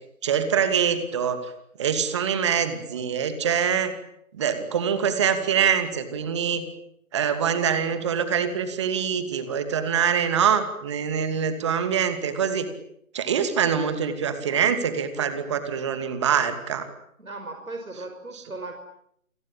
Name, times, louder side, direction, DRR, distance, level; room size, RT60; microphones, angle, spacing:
voice 1, 0.2-1.4 1.8-3.9 4.3-6.7 7.1-12.7 13.1-16.9 18.3-18.4, right 7 dB, 20° right, 10 dB, 2.6 m, -24 dB
voice 2, 17.2-18.7, right 2 dB, 75° right, 4 dB, 5.5 m, -37 dB
29.5 x 22.0 x 9.1 m, 0.72 s
figure-of-eight pair, 155°, 42 cm